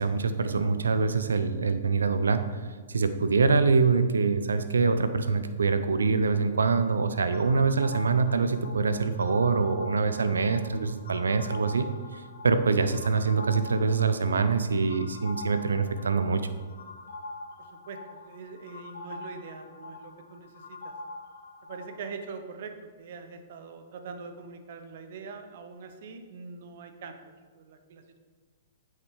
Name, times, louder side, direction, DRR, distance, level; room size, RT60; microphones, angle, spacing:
voice 1, 0.0-2.4 2.9-16.4, right 4 dB, 85° right, 10 dB, 0.7 m, -25 dB
sound 1, 7.3-22.1, left 2 dB, 70° left, 1.2 m, -44 dB
voice 2, 17.6-20.9 21.6-22.7 23.0-28.2, right 5 dB, 60° right, 7 dB, 1.1 m, -43 dB
8.1 x 5.9 x 4.8 m, 1.5 s
hypercardioid pair, 120°, 0 cm